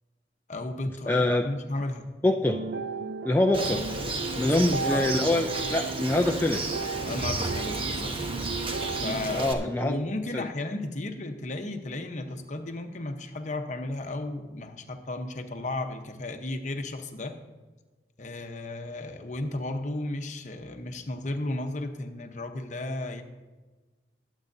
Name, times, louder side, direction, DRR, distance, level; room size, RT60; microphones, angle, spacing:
voice 1, 0.5-2.1 4.3-5.5 7.0-8.2 8.9-17.4 18.2-23.2, left 2 dB, 45° left, 5 dB, 0.9 m, -34 dB
voice 2, 1.1-1.4 2.2-2.6 3.2-3.8 4.4-6.8 9.3-9.9 10.3-10.4, left 1 dB, 10° left, 2 dB, 0.4 m, -25 dB
sound 1, 2.5-9.4, right 4 dB, 60° right, 0.4 m, -35 dB
Bird, 3.5-9.5, right 2 dB, 30° right, 0.9 m, -33 dB
20.5 x 8.2 x 2.7 m, 1.2 s
head